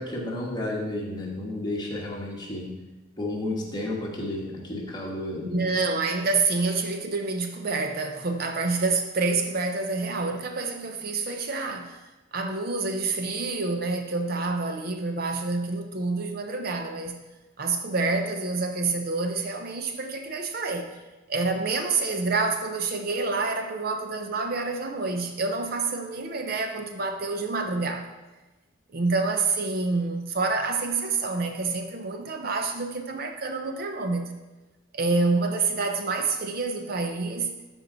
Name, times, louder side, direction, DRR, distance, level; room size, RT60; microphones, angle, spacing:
voice 1, 0.0-2.7 3.2-5.5, left 1 dB, 20° left, -2 dB, 1.4 m, -32 dB
voice 2, 5.4-12.0 12.3-17.2 17.6-20.9 21.3-28.1 28.9-34.3 34.9-37.6, right 3 dB, 50° right, 5 dB, 0.7 m, -27 dB
13.0 x 4.6 x 3.9 m, 1.1 s
head